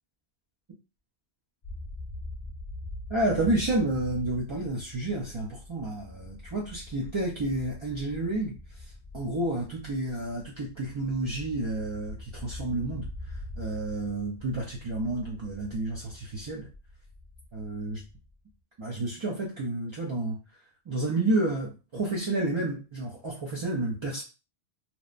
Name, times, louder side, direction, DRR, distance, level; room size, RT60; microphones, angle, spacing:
sound 1, 1.6-18.5, left 2 dB, 50° left, 0.4 m, -43 dB
voice 1, 3.1-16.7 17.5-18.0 18.8-20.6 20.9-24.2, right 2 dB, 40° right, -3 dB, 0.4 m, -30 dB
2.9 x 2.0 x 2.4 m, 0.30 s
omnidirectional pair, 1.1 m